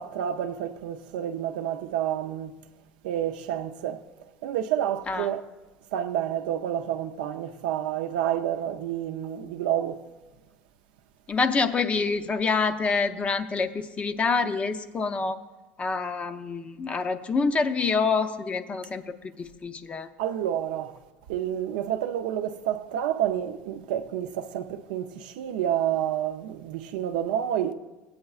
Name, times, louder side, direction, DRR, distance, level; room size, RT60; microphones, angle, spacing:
voice 1, 0.0-2.5 3.0-4.0 4.4-5.4 5.9-10.0 20.2-21.0 21.3-27.7, right 10 dB, 90° right, 0.5 m, -29 dB
voice 2, 11.3-15.4 15.8-20.1, left 4 dB, 30° left, 0.6 m, -27 dB
16.0 x 8.6 x 2.4 m
supercardioid pair, 105°, 5 cm